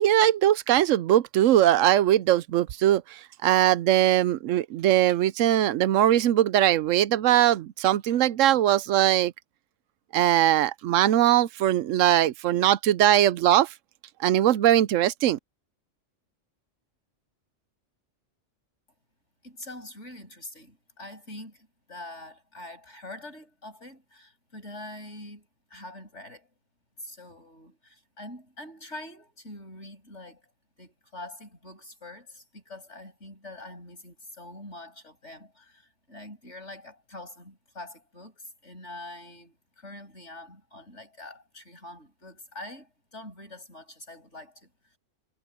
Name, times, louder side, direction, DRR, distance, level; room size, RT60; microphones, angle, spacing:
voice 1, 0.0-9.3 10.1-13.7 14.2-15.4, right 12 dB, 85° right, 1.0 m, -21 dB
voice 2, 19.4-26.5 27.0-30.5 30.8-45.0, left 1 dB, 65° left, 8.1 m, -44 dB
omnidirectional pair, 1.3 m